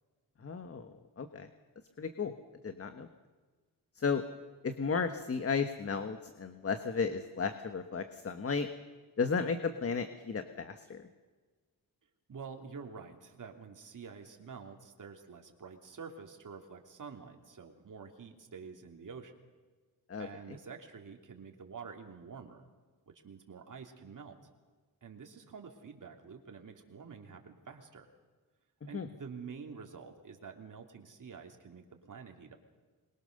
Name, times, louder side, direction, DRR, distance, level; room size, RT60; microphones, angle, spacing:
voice 1, 0.4-1.5 2.0-2.3 2.6-3.1 4.0-4.2 4.6-8.7 9.2-11.0 20.1-20.6 28.8-29.1, left 5 dB, 35° left, 8 dB, 1.4 m, -34 dB
voice 2, 12.3-19.3 20.2-22.7 23.2-24.5 25.0-28.1 28.9-32.6, right 5 dB, 50° right, 3 dB, 3.1 m, -48 dB
26.0 x 22.5 x 6.7 m, 1.4 s
wide cardioid pair, 125°, 39 cm